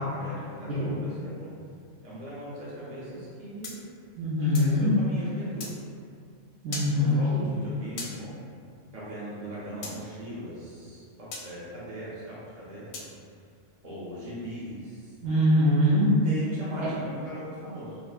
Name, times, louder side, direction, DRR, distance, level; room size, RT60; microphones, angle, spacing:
voice 1, 0.0-1.5 2.0-3.9 4.5-5.7 6.9-8.3 8.9-13.0 13.8-15.1 16.2-18.0, right 1 dB, 40° right, -10 dB, 0.6 m, -39 dB
sound 1, 3.6-4.8 5.6-5.8 6.7-6.9 8.0-8.2 9.8-10.0 11.3-11.5 12.9-13.1, left 3 dB, 60° left, 0.6 m, -38 dB
voice 2, 4.2-4.9 6.6-7.5 15.2-16.1 16.8-16.9, left 1 dB, 80° right, -10 dB, 0.9 m, -23 dB
3.9 x 2.0 x 2.3 m, 2.3 s
omnidirectional pair, 1.1 m